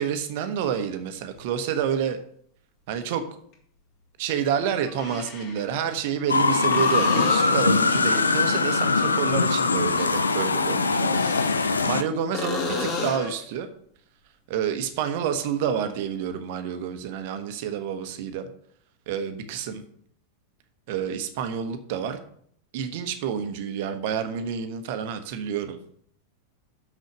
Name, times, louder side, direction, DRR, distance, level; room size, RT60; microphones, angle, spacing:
voice 1, 0.0-2.2 2.9-3.2 4.2-11.5 11.9-13.7 14.5-18.5 19.1-19.8 20.9-22.2 22.7-25.8, right 8 dB, 50° right, 9 dB, 1.1 m, -29 dB
sound 1, 1.4-1.5 3.5-3.6 4.9-5.7 6.7-7.8 11.0-12.0 12.3-13.4 17.0-17.1, left 4 dB, 40° left, 2.3 m, -32 dB
sound 2, 6.3-12.0, left 4 dB, 75° left, 0.6 m, -22 dB
6.5 x 6.4 x 6.8 m, 0.64 s
figure-of-eight pair, 90°, 0 cm